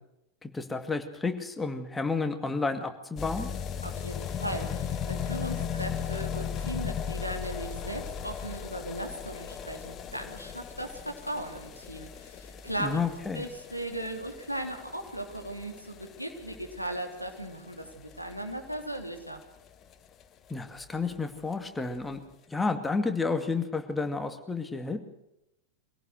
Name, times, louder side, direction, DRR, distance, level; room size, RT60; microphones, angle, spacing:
voice 1, 0.4-3.5 12.8-13.5 20.5-22.2 22.5-25.0, left 4 dB, 10° left, 7 dB, 2.3 m, -31 dB
sound 1, 3.2-19.9 20.2-20.3 20.5-20.6 20.8-20.9 21.2-21.3 21.9-22.0, left 7 dB, 30° left, 1.5 m, -37 dB
voice 2, 3.8-13.0 13.3-19.4, right 1 dB, 90° right, 3 dB, 3.3 m, -37 dB
24.0 x 17.5 x 6.4 m, 0.83 s
figure-of-eight pair, 90°, 0 cm